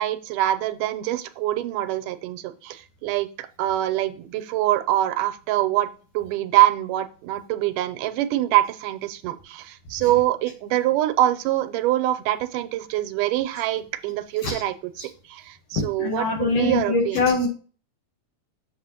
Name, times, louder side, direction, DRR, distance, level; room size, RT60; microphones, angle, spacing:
voice 1, 0.0-5.9 6.1-14.9 15.3-17.4, right 14 dB, 85° right, 10 dB, 2.1 m, -24 dB
voice 2, 16.0-17.5, left 3 dB, 60° left, 2 dB, 2.0 m, -23 dB
7.2 x 6.8 x 2.9 m, 0.38 s
omnidirectional pair, 3.7 m